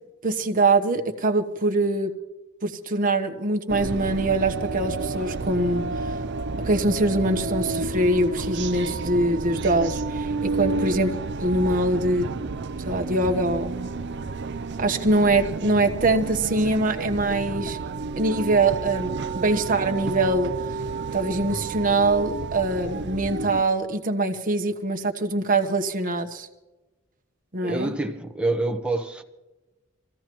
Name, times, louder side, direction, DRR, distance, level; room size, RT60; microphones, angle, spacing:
voice 1, 0.2-2.1 2.6-6.1 6.6-11.1 11.4-12.3 12.9-13.9 14.8-17.8 18.2-20.5 21.1-26.5 27.5-27.9, right 2 dB, 45° right, 1.2 m, -23 dB
sound 1, 3.7-23.6, right 3 dB, 60° right, 0.6 m, -30 dB
voice 2, 27.6-29.2, right 2 dB, 5° right, 1.1 m, -27 dB
26.0 x 14.5 x 3.1 m
head